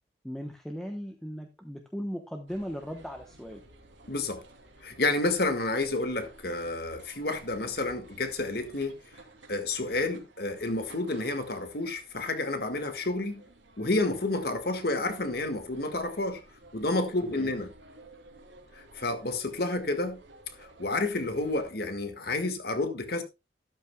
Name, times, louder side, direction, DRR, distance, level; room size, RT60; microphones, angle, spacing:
voice 1, 0.2-3.6 17.4-17.5, equal, 5° left, 0.9 m, -37 dB
sound 1, 2.5-21.7, right 2 dB, 80° right, 2.9 m, -54 dB
voice 2, 4.1-4.4 4.8-9.0 9.5-13.4 13.8-16.4 16.7-17.7 18.7-20.2 20.6-23.2, left 2 dB, 55° left, 1.7 m, -30 dB
13.0 x 11.5 x 2.3 m
head